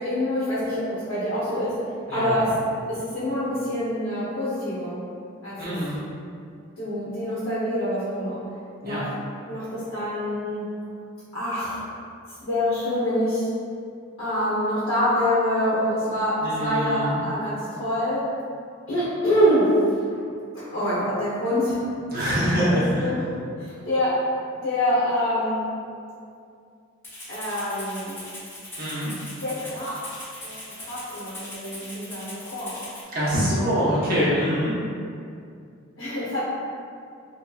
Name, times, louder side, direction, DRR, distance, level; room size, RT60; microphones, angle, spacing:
voice 1, 0.0-1.8 2.1-2.5 2.9-5.0 5.4-5.8 6.8-8.4 8.8-9.1 9.5-10.7 11.3-11.8 12.3-13.5 14.2-18.3 18.9-19.8 20.1-20.2 20.5-22.4 22.7-23.3 23.6-24.2 24.6-25.7 27.3-28.2 29.4-30.0 30.4-32.7 36.0-36.4, equal, 85° left, -12 dB, 0.8 m, -26 dB
voice 2, 2.1-2.4 5.6-6.0 8.8-9.0 16.4-17.2 22.1-22.9 28.8-29.1 33.1-34.7, equal, 45° right, -9 dB, 0.8 m, -24 dB
Rattle (instrument), 27.0-33.0, left 1 dB, 10° left, 0.5 m, -40 dB
2.6 x 2.6 x 2.2 m, 2.4 s
head